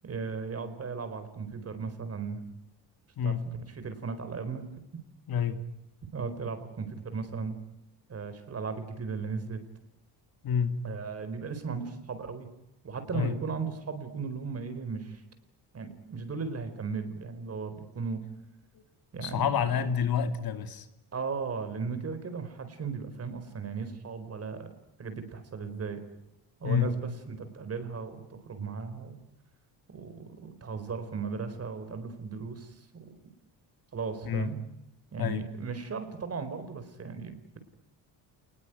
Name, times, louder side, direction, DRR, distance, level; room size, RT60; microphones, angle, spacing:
voice 1, 0.0-2.4 3.2-3.4 3.7-4.6 6.1-7.6 8.1-9.6 10.8-12.5 12.8-15.2 15.7-18.2 19.1-19.7 21.1-24.7 25.0-26.0 26.6-29.2 29.9-33.1 33.9-34.6 35.1-37.6, right 5 dB, 35° right, 10 dB, 4.3 m, -36 dB
voice 2, 3.2-3.5 5.3-5.6 10.4-10.8 13.1-13.3 19.2-20.9 26.6-26.9 34.3-34.5 35.2-35.4, left 7 dB, 60° left, 9 dB, 2.4 m, -28 dB
29.5 x 20.5 x 9.3 m, 0.91 s
cardioid pair, 135°, 40 cm